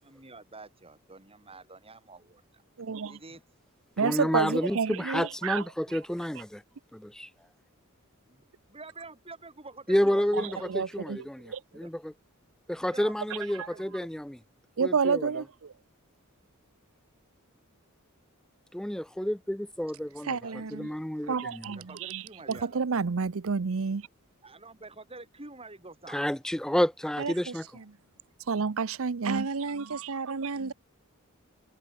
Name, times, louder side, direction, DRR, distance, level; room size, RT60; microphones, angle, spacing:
voice 1, 0.0-2.6 3.0-3.4 8.3-10.7 11.7-11.9 12.8-14.0 20.4-20.7 21.7-22.9 24.4-26.2, right 3 dB, 25° right, 6.2 m, -48 dB
voice 2, 2.8-3.2 4.0-5.6 10.7-11.6 14.8-15.4 21.3-22.2 22.5-24.0 28.5-29.5 29.9-30.3, right 5 dB, 65° right, 0.6 m, -29 dB
voice 3, 4.0-6.6 6.9-7.3 9.9-12.1 12.7-14.4 14.8-15.4 18.7-20.4 20.7-21.8 26.1-27.6, equal, 5° left, 0.4 m, -30 dB
voice 4, 20.2-20.9 21.2-21.4 27.2-27.8 29.2-30.7, right 4 dB, 85° right, 1.0 m, -34 dB
head